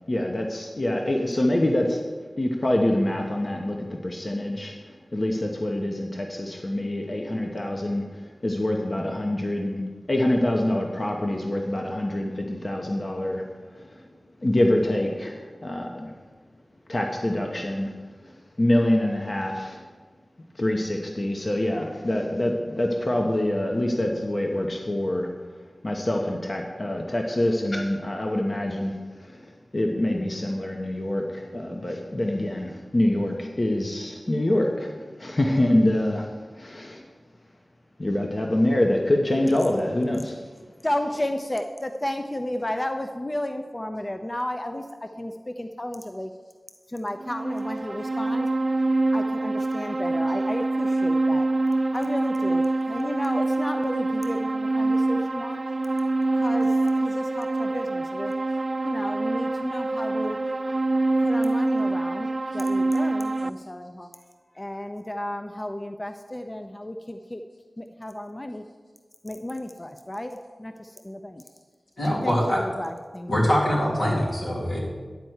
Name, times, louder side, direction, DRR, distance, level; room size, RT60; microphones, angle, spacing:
voice 1, 0.1-2.0 2.4-13.5 13.7-14.0 14.4-16.1 16.9-17.9 18.2-19.9 20.5-25.3 25.8-37.1 38.0-40.4, left 1 dB, 45° left, 1 dB, 1.0 m, -25 dB
voice 2, 40.8-46.3 46.9-48.5 49.1-51.5 51.9-55.6 56.3-58.3 58.8-60.4 61.2-62.3 62.5-64.1 64.5-67.4 67.8-68.6 69.2-71.4 72.2-73.3, left 1 dB, 25° left, 6 dB, 0.5 m, -33 dB
sound 1, 47.2-63.5, right 2 dB, 50° right, 0.4 m, -25 dB
voice 3, 72.0-72.6 73.3-74.8, equal, 85° left, -5 dB, 2.9 m, -23 dB
10.5 x 4.5 x 8.0 m, 1.5 s
wide cardioid pair, 50°, 0 cm